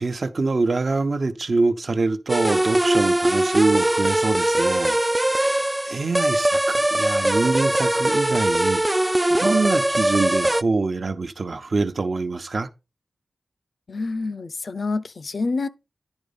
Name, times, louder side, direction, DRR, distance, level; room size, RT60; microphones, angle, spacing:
voice 1, 0.0-8.8 9.3-12.7, right 3 dB, 60° right, 0.9 m, -25 dB
sound 1, 2.3-10.6, right 1 dB, 15° right, 0.3 m, -21 dB
voice 2, 13.9-15.7, left 3 dB, 65° left, 0.6 m, -27 dB
9.9 x 4.1 x 5.3 m
wide cardioid pair, 65°, 0 cm